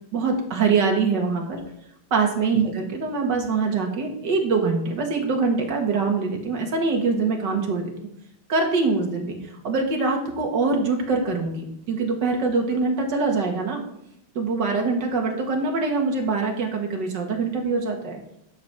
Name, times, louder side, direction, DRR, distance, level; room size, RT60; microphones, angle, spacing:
voice 1, 0.1-1.6 2.1-7.9 8.5-9.4 9.6-13.8 14.4-18.2, right 4 dB, 55° right, 2 dB, 2.3 m, -24 dB
11.5 x 5.2 x 5.9 m, 0.74 s
omnidirectional pair, 2.3 m